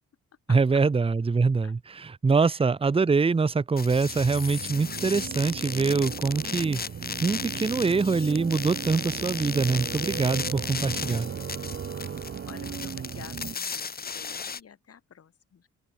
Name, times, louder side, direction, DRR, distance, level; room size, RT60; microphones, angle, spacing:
voice 1, 0.5-6.8 7.2-11.3, right 4 dB, 20° right, 0.8 m, -24 dB
sound 1, 3.8-14.6, left 5 dB, 30° left, 1.4 m, -36 dB
sound 2, 3.8-13.6, right 7 dB, 40° right, 1.4 m, -36 dB
voice 2, 12.5-15.7, left 7 dB, 50° left, 6.0 m, -49 dB
open air
cardioid pair, 90°, 30 cm